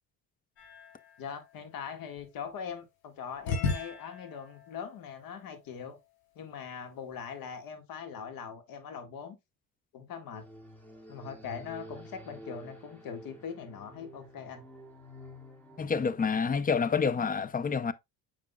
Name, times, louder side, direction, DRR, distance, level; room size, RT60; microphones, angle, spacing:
sound 1, 0.6-2.7 3.4-6.3, left 4 dB, 80° left, 3.9 m, -38 dB
voice 1, 1.2-6.0 6.4-9.4 9.9-10.4 11.1-14.6, left 7 dB, 65° left, 1.8 m, -41 dB
sound 2, 10.3-15.9, equal, 5° left, 2.4 m, -49 dB
voice 2, 15.8-17.9, left 5 dB, 25° left, 0.6 m, -28 dB
7.3 x 5.8 x 2.3 m
supercardioid pair, 90°, 38 cm